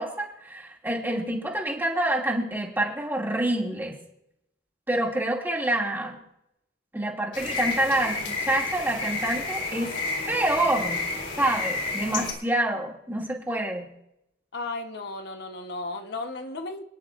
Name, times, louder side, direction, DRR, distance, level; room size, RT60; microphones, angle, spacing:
voice 1, 0.0-4.0 4.9-6.2 6.9-9.9 10.3-11.0 11.4-13.9, right 1 dB, 10° right, -1 dB, 2.4 m, -27 dB
sound 1, 7.3-12.3, left 3 dB, 80° left, 3.6 m, -30 dB
voice 2, 14.5-16.8, left 2 dB, 65° left, 5 dB, 1.1 m, -35 dB
27.0 x 10.5 x 2.5 m, 0.80 s
head